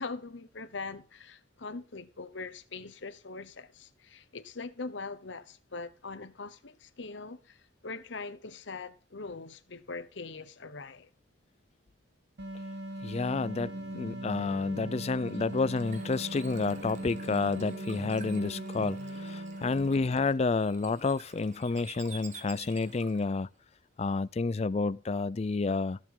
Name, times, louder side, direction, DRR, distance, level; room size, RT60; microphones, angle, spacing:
voice 1, 0.0-11.1 19.6-20.0, left 3 dB, 70° left, 1.0 m, -42 dB
sound 1, 12.4-20.5, right 1 dB, 60° right, 1.1 m, -40 dB
voice 2, 13.0-23.5 24.0-26.0, left 3 dB, 35° left, 0.4 m, -30 dB
sound 2, 13.1-19.6, right 1 dB, 75° right, 2.1 m, -47 dB
Bird / Water, 14.9-23.4, right 5 dB, 40° right, 1.3 m, -51 dB
14.5 x 7.4 x 3.8 m
head